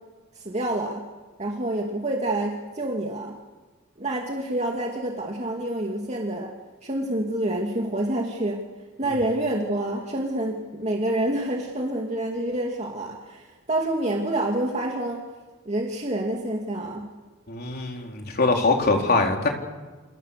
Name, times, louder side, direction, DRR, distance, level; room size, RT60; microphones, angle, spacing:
voice 1, 0.3-1.0 1.4-3.4 4.0-6.5 6.8-8.6 9.0-15.2 15.7-17.1, right 1 dB, 35° right, 0 dB, 2.5 m, -27 dB
voice 2, 17.5-19.5, left 3 dB, 50° left, 1 dB, 4.0 m, -22 dB
28.5 x 28.5 x 6.8 m, 1.3 s
head